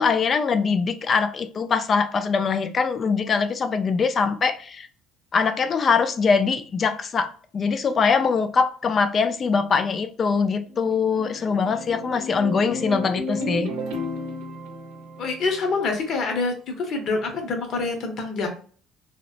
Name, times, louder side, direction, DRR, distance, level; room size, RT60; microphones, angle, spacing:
voice 1, 0.0-4.9 5.3-13.7, left 5 dB, 40° left, 0.3 m, -22 dB
sound 1, 10.4-16.1, left 1 dB, 85° right, 0.6 m, -34 dB
voice 2, 15.2-18.5, left 3 dB, 55° left, 0.8 m, -26 dB
2.8 x 2.0 x 2.4 m
cardioid pair, 105°, 0 cm